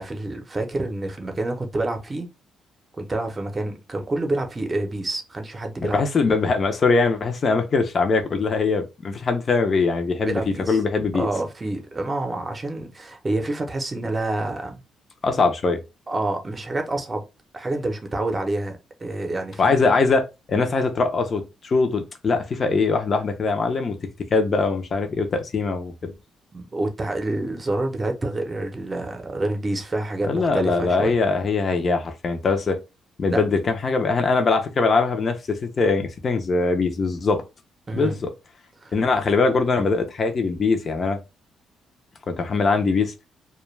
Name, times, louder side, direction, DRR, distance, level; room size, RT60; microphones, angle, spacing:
voice 1, 0.0-2.3 3.0-6.0 10.2-10.8 11.1-14.8 16.1-17.2 17.5-19.9 26.5-31.2 33.3-33.5 37.9-38.1 38.8-38.9, right 2 dB, 25° right, 0.7 m, -28 dB
voice 2, 5.8-11.3 15.2-15.8 19.6-20.2 20.5-24.0 24.3-26.1 30.3-32.8 33.2-37.4 37.9-38.3 38.9-41.2 42.3-43.1, left 4 dB, 40° left, 0.5 m, -22 dB
2.2 x 2.2 x 3.1 m
cardioid pair, 90°, 0 cm